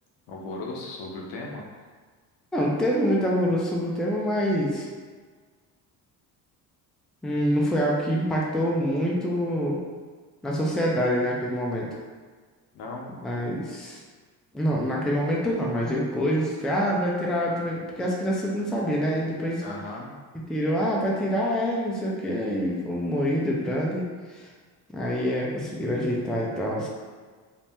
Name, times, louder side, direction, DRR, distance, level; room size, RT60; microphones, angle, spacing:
voice 1, 0.3-1.6 12.7-13.1 19.6-20.1, left 2 dB, 65° left, -1 dB, 0.8 m, -36 dB
voice 2, 2.5-4.9 7.2-9.8 10.4-11.9 13.2-14.0 14.5-19.6 20.5-24.1 24.3-24.5 24.9-26.9, equal, ahead, -4 dB, 0.5 m, -26 dB
2.7 x 2.0 x 3.3 m, 1.5 s
supercardioid pair, 70°, 44 cm